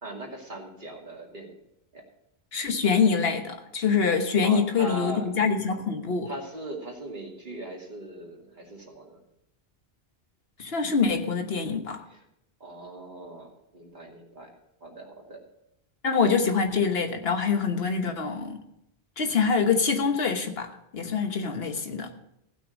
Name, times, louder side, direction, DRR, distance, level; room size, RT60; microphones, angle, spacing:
voice 1, 0.0-1.6 1.9-2.0 4.4-5.3 6.3-9.2 12.1-12.2 12.6-14.5 14.8-15.4, equal, 50° right, -1 dB, 2.6 m, -39 dB
voice 2, 2.5-6.3 10.6-12.0 16.0-18.6 19.2-22.1, left 5 dB, 70° left, 6 dB, 1.5 m, -25 dB
15.5 x 6.2 x 6.4 m, 0.81 s
omnidirectional pair, 1.0 m